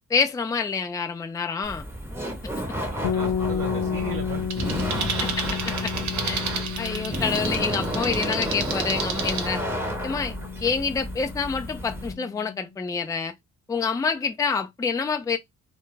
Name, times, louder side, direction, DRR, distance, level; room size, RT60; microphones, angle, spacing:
voice 1, 0.1-1.8 5.2-5.4 5.8-5.9 6.2-6.5 6.8-9.6 10.0-10.4 10.6-13.3 13.7-15.4, left 5 dB, 10° left, 0.4 m, -27 dB
Laughter, 1.6-12.1, equal, 10° right, 1.0 m, -31 dB
voice 2, 2.4-5.1, right 4 dB, 35° right, 1.2 m, -38 dB
sound 1, 3.0-12.8, left 8 dB, 90° left, 0.5 m, -33 dB
sound 2, 4.5-9.5, right 6 dB, 65° right, 0.7 m, -32 dB
2.2 x 2.0 x 3.1 m
cardioid pair, 90°, 30 cm